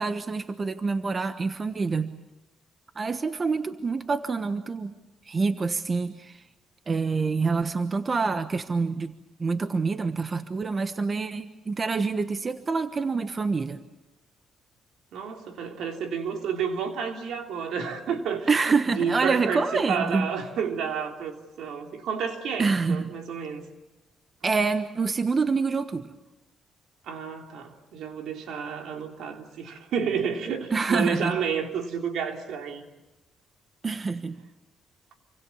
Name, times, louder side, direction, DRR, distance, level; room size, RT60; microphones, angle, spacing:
voice 1, 0.0-2.1 2.9-4.9 5.2-6.4 6.9-9.1 9.4-13.8 18.5-20.3 22.6-23.1 24.4-26.1 30.7-31.3 33.8-34.4, right 4 dB, 35° right, 1.2 m, -26 dB
voice 2, 15.1-23.7 27.0-32.8, right 6 dB, 80° right, 3.3 m, -30 dB
27.5 x 25.0 x 7.2 m
cardioid pair, 90°, 0 cm